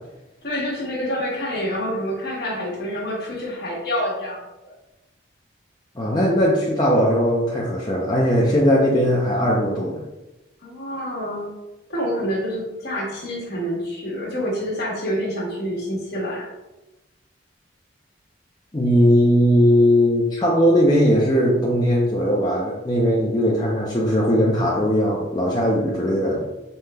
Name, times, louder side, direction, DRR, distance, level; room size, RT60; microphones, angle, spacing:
voice 1, 0.4-4.7 10.6-11.5 11.9-16.5, equal, 55° left, -4 dB, 1.2 m, -27 dB
voice 2, 6.0-10.0 18.7-26.4, equal, 20° left, -5 dB, 0.5 m, -19 dB
5.3 x 3.2 x 2.2 m, 1.0 s
head